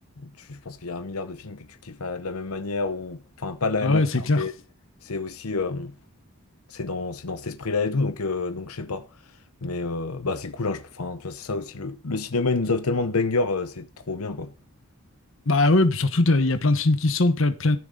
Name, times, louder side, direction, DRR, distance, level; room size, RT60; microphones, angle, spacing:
voice 1, 0.2-4.0 4.4-4.5 5.0-5.9 6.7-9.0 9.6-14.5, left 3 dB, 85° left, 0.9 m, -28 dB
voice 2, 3.8-4.4 15.5-17.8, left 2 dB, 65° left, 1.1 m, -20 dB
14.0 x 6.3 x 5.4 m
head